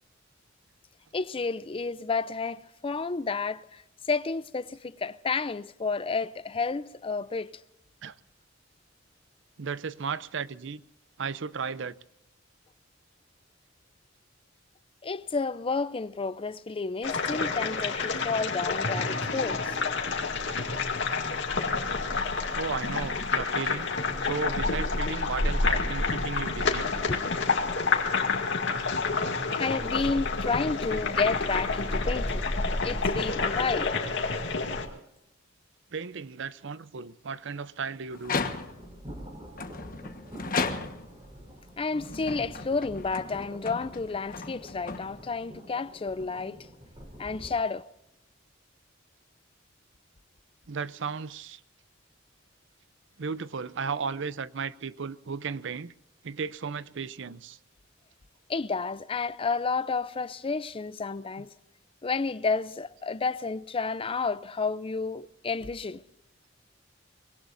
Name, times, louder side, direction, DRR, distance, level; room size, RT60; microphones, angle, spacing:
voice 1, 1.1-7.5 15.0-19.8 27.1-27.2 29.5-32.4 32.8-34.0 41.8-46.6 47.2-47.9 58.5-61.5 62.0-66.0, left 4 dB, 30° left, 0.5 m, -31 dB
voice 2, 9.6-10.8 11.2-12.0 22.5-23.9 24.2-26.9 35.9-38.4 50.7-51.6 53.2-55.9 56.2-57.6, right 5 dB, 65° right, 0.6 m, -35 dB
sound 1, 17.0-34.9, left 4 dB, 65° left, 2.3 m, -28 dB
sound 2, 38.1-39.0 39.6-41.2 41.9-45.5, left 4 dB, 45° left, 1.3 m, -35 dB
sound 3, 38.7-47.5, equal, 25° right, 4.3 m, -47 dB
24.5 x 22.0 x 2.6 m
head